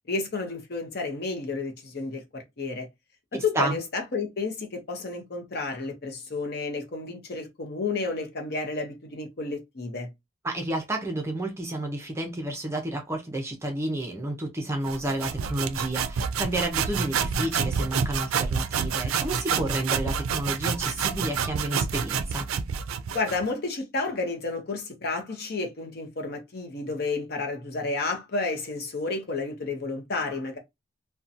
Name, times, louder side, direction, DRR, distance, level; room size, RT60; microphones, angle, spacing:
voice 1, 0.1-2.9 3.3-10.1 23.1-30.6, left 3 dB, 50° left, 0.7 m, -31 dB
voice 2, 3.3-3.8 10.4-22.5, right 1 dB, 15° right, 0.6 m, -31 dB
sound 1, 14.9-23.5, right 6 dB, 90° right, 0.4 m, -28 dB
2.7 x 2.2 x 2.5 m
head